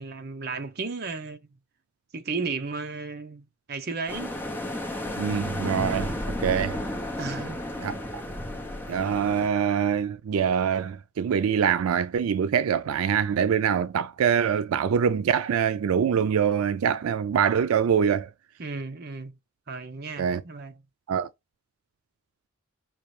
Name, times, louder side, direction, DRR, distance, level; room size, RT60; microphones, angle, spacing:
voice 1, 0.0-1.5 2.1-4.4 7.2-7.6 18.6-19.4 19.7-20.8, right 4 dB, 50° right, 0.7 m, -34 dB
sound 1, 4.1-9.5, left 1 dB, 10° left, 0.8 m, -32 dB
voice 2, 5.2-6.8 7.8-8.2 8.9-18.3 20.2-20.4 21.1-21.3, right 7 dB, 90° right, 0.4 m, -24 dB
5.7 x 2.5 x 3.2 m
head